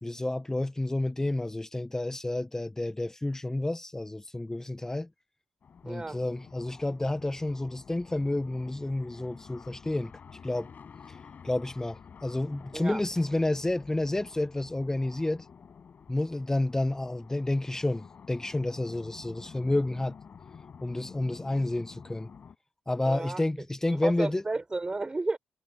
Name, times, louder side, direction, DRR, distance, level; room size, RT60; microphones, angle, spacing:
voice 1, 0.0-5.1 5.8-10.1 10.4-10.7 11.1-11.2 11.4-15.5 16.1-20.2 20.8-22.3 22.9-24.4, left 2 dB, 15° left, 1.1 m, -30 dB
sound 1, 5.6-22.6, left 6 dB, 50° left, 5.7 m, -50 dB
voice 2, 5.9-6.2 12.7-13.0 23.1-23.4 23.8-25.4, right 3 dB, 25° right, 3.9 m, -32 dB
supercardioid pair, 55°, 4 cm